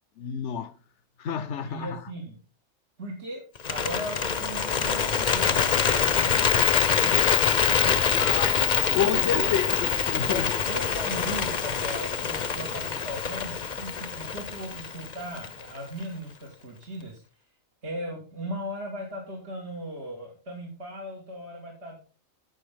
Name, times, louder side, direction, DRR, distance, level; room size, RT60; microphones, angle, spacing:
voice 1, 0.2-0.7 1.2-1.9 8.2-8.5 8.9-10.4, left 8 dB, 70° left, 0.9 m, -29 dB
voice 2, 1.6-2.4 3.0-7.5 7.8-8.8 9.1-9.5 10.3-17.2 17.8-22.0, right 1 dB, 55° right, 2.4 m, -38 dB
Bird, 3.6-15.8, left 6 dB, 40° left, 0.8 m, -25 dB
16.5 x 5.6 x 3.7 m
omnidirectional pair, 1.3 m